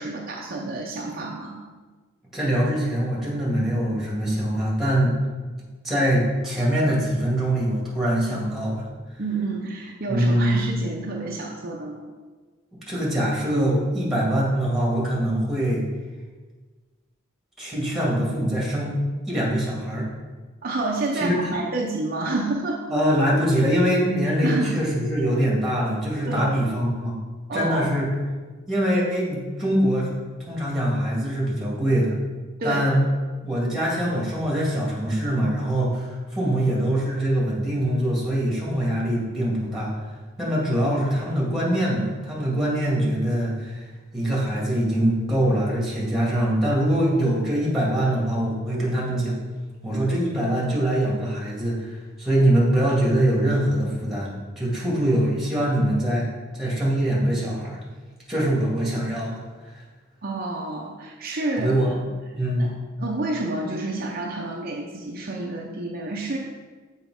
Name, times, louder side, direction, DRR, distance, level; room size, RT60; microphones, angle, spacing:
voice 1, 0.0-1.7 9.2-12.0 20.6-22.8 24.4-24.8 26.3-26.5 27.5-27.9 32.6-32.9 60.2-62.0 62.6-62.7 63.0-66.4, right 2 dB, 45° right, -1 dB, 0.7 m, -29 dB
voice 2, 2.3-5.1 5.8-8.8 10.1-10.6 12.9-15.8 17.6-18.9 19.3-20.1 21.1-21.6 22.9-27.1 27.5-28.1 28.7-30.1 30.5-32.1 32.6-33.0 33.4-39.9 40.4-43.8 44.1-49.3 49.8-56.3 56.5-57.8 58.3-59.4 61.6-61.9 62.4-62.7, right 1 dB, ahead, -5 dB, 2.0 m, -23 dB
6.9 x 4.4 x 4.8 m, 1.4 s
head